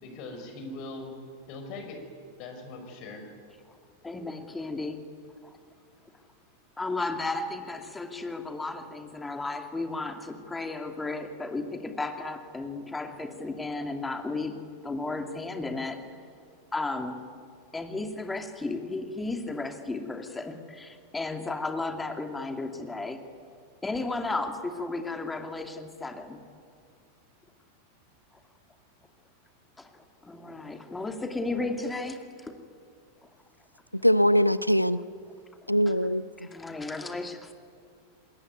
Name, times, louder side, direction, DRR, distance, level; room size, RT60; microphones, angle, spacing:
voice 1, 0.0-1.1 1.5-2.0 2.4-3.3, left 2 dB, 45° left, 5 dB, 5.6 m, -40 dB
voice 2, 4.0-5.0 5.4-5.6 6.8-14.6 14.8-16.0 16.7-17.2 17.7-23.2 23.8-26.4 29.8-29.9 30.2-32.6 35.6-35.7 36.4-37.5, left 3 dB, 10° left, 6 dB, 2.5 m, -34 dB
voice 3, 33.9-35.0 35.7-36.5, equal, 90° left, 16 dB, 0.7 m, -22 dB
27.0 x 20.5 x 9.6 m, 2.2 s
figure-of-eight pair, 90°, 0 cm